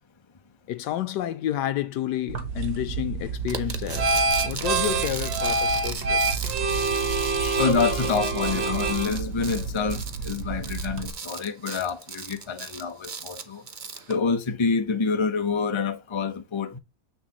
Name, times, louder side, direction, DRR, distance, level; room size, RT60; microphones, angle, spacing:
voice 1, 0.7-4.1 4.4-6.3, left 12 dB, 75° left, 1.1 m, -30 dB
sound 1, 2.3-11.1, right 3 dB, 85° right, 2.0 m, -27 dB
sound 2, 3.5-14.1, right 5 dB, 40° right, 0.7 m, -37 dB
voice 2, 7.1-13.6 14.1-16.8, left 5 dB, 25° left, 0.7 m, -27 dB
8.1 x 6.1 x 3.0 m
omnidirectional pair, 2.0 m